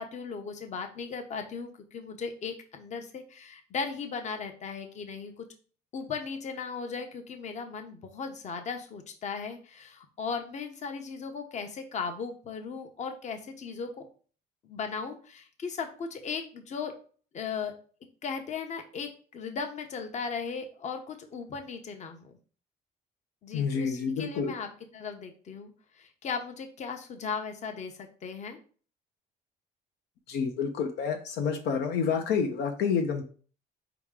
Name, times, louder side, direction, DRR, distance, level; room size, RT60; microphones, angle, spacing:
voice 1, 0.0-5.5 5.9-14.0 14.6-16.9 17.3-17.7 18.2-22.3 23.4-25.7 26.0-28.6, left 5 dB, 45° left, 6 dB, 0.9 m, -37 dB
voice 2, 23.5-24.5 30.3-33.2, left 6 dB, 75° left, 4 dB, 0.7 m, -28 dB
4.7 x 3.0 x 3.7 m, 0.41 s
cardioid pair, 110°, 17 cm